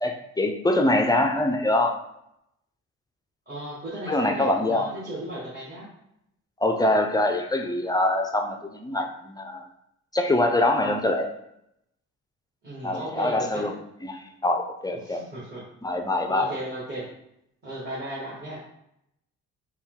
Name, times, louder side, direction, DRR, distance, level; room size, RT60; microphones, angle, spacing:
voice 1, 0.0-2.0 4.1-4.9 6.6-9.6 10.1-11.3 12.8-15.2 15.8-16.5, left 1 dB, 15° left, 3 dB, 0.4 m, -24 dB
voice 2, 3.5-5.9 12.6-13.7 14.9-15.7 16.3-17.1 17.6-18.6, right 1 dB, 35° right, -9 dB, 1.5 m, -36 dB
4.2 x 2.3 x 3.8 m, 0.78 s
cardioid pair, 90°, 30 cm